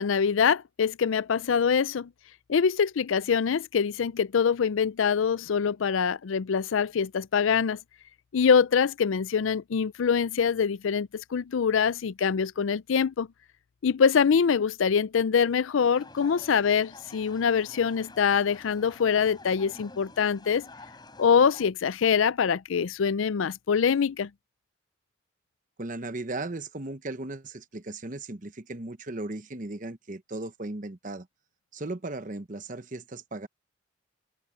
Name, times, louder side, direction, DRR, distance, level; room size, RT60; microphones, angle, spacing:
voice 1, 0.0-2.1 2.5-7.8 8.3-13.3 13.8-20.7 21.2-24.3, left 6 dB, 80° left, 0.4 m, -24 dB
sound 1, 15.8-21.7, left 2 dB, 20° left, 5.6 m, -49 dB
voice 2, 25.8-31.3 31.7-33.5, right 2 dB, 40° right, 0.9 m, -36 dB
head